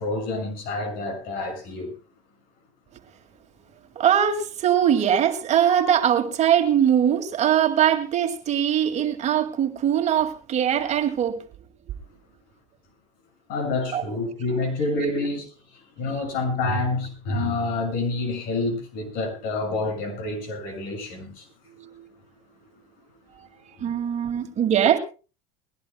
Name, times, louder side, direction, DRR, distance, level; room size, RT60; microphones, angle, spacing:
voice 1, 0.0-1.9 13.5-15.5 16.0-21.5, left 2 dB, 60° left, 6.4 m, -28 dB
voice 2, 4.0-11.4 13.9-14.0 21.8-22.1 23.8-25.0, right 9 dB, 40° right, 2.2 m, -21 dB
21.0 x 16.5 x 2.2 m
supercardioid pair, 105°, 17 cm